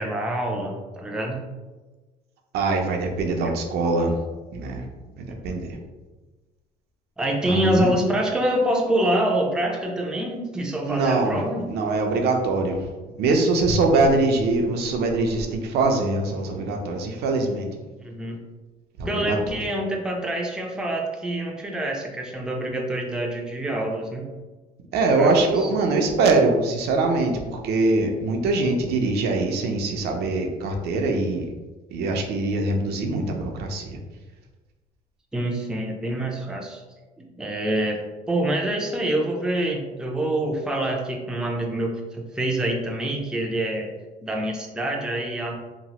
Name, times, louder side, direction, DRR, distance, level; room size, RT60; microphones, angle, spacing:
voice 1, 0.0-1.5 3.4-3.5 5.4-5.6 7.2-11.7 18.0-18.4 19.0-24.3 25.2-25.3 35.3-36.8 37.2-43.9 44.2-45.6, right 1 dB, 5° right, 0 dB, 0.4 m, -26 dB
voice 2, 2.5-4.2 4.5-4.9 5.2-5.8 7.5-7.9 10.9-11.4 11.7-12.9 13.2-17.7 19.0-19.4 24.9-31.5 31.9-34.0, right 3 dB, 75° right, 3 dB, 0.5 m, -23 dB
2.9 x 2.0 x 2.9 m, 1.2 s
cardioid pair, 110°, 17 cm